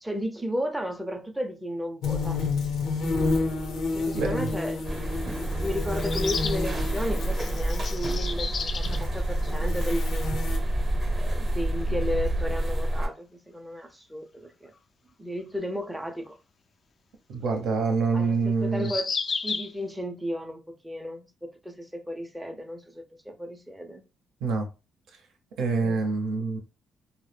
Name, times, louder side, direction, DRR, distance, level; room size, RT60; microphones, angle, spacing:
voice 1, 0.0-2.4 3.9-5.3 5.6-10.3 11.1-14.7 15.2-16.4 18.1-19.1 19.4-24.0 25.8-26.0, equal, 5° right, 0.5 m, -34 dB
sound 1, 2.0-8.1 8.7-10.6, left 3 dB, 80° left, 0.7 m, -30 dB
voice 2, 4.1-4.5 17.3-18.9 24.4-24.7 25.6-26.6, right 4 dB, 85° right, 0.6 m, -26 dB
sound 2, 4.8-13.1, right 1 dB, 35° right, 0.7 m, -28 dB
sound 3, 6.0-6.6 7.3-9.0 10.3-10.4 10.5-10.6 13.0-13.1 16.3-16.4 18.7-19.7, left 5 dB, 50° left, 0.3 m, -32 dB
2.1 x 2.0 x 3.2 m
cardioid pair, 90°, 0 cm